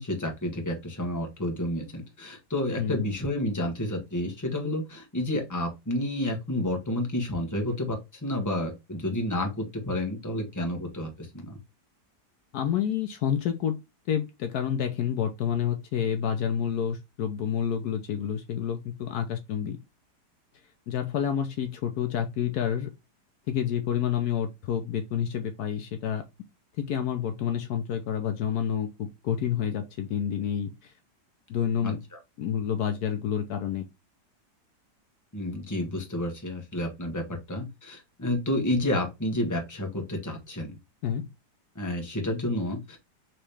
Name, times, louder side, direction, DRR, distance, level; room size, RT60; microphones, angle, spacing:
voice 1, 0.0-11.6 31.8-31.9 35.3-40.7 41.7-43.0, left 1 dB, 10° left, 1.1 m, -30 dB
voice 2, 12.5-13.8 14.1-19.8 20.9-22.9 23.5-26.2 26.8-30.9 31.5-32.0 32.4-33.8 41.0-41.3, left 9 dB, 70° left, 1.2 m, -29 dB
4.7 x 3.1 x 3.3 m
omnidirectional pair, 1.8 m